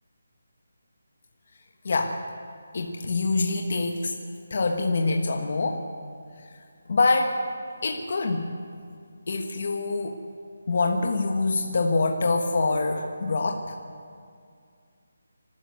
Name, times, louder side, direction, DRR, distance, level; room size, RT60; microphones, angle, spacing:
voice 1, 1.8-2.2 2.7-4.1 4.5-5.9 6.9-7.4 7.8-8.5 9.3-10.2 10.7-13.6, left 3 dB, 35° left, 3 dB, 1.3 m, -25 dB
25.0 x 13.0 x 8.0 m, 2.2 s
hypercardioid pair, 180°, 0 cm